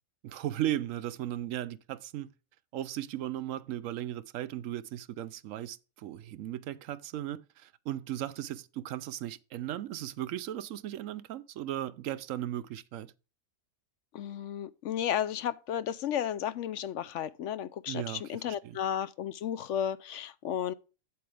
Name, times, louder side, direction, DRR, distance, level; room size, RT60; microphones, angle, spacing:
voice 1, 0.2-2.3 2.7-13.1 17.9-18.8, right 12 dB, 75° right, 1.0 m, -36 dB
voice 2, 14.1-20.7, left 10 dB, 70° left, 0.9 m, -33 dB
8.7 x 7.8 x 3.3 m
omnidirectional pair, 1.4 m